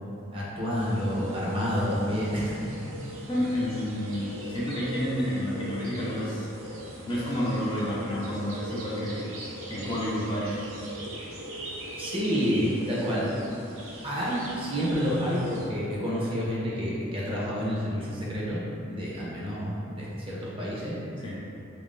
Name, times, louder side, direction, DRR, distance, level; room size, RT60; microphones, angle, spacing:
voice 1, 0.3-2.7 12.0-13.3 14.0-18.6 18.9-21.0, equal, 25° right, -6 dB, 0.6 m, -29 dB
sound 1, 0.7-15.7, right 1 dB, 75° right, 0.7 m, -41 dB
voice 2, 3.3-6.5 7.1-9.3 9.7-10.6 21.2-21.4, equal, 25° left, -7 dB, 0.4 m, -30 dB
3.2 x 2.6 x 3.6 m, 2.7 s
head